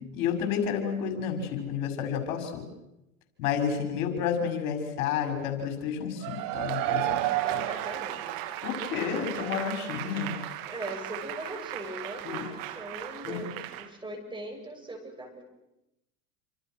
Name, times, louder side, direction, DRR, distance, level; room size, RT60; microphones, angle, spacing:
voice 1, 0.0-2.7 3.4-7.6 8.6-10.3 12.2-12.4 13.2-13.4, left 7 dB, 60° left, 5 dB, 6.2 m, -31 dB
Cheering / Applause / Crowd, 6.2-13.9, right 15 dB, 55° right, 2.6 m, -34 dB
voice 2, 7.4-8.4 10.7-15.4, right 1 dB, 10° right, 3 dB, 7.1 m, -40 dB
28.0 x 26.5 x 6.4 m, 0.90 s
hypercardioid pair, 95°, 42 cm